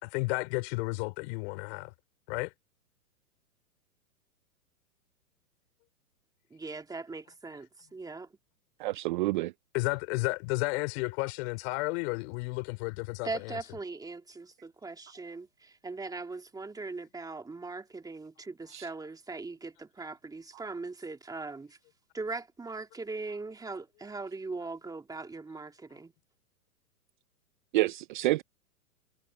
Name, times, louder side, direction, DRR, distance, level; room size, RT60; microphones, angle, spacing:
voice 1, 0.0-1.9 2.3-2.5 9.7-13.6, left 28 dB, 45° left, 4.2 m, -32 dB
voice 2, 6.5-8.3 13.2-21.8 22.1-26.1, right 3 dB, 10° right, 2.5 m, -40 dB
voice 3, 8.8-9.5 18.7-18.9 27.7-28.4, right 18 dB, 35° right, 0.5 m, -28 dB
hypercardioid pair, 125°, 46 cm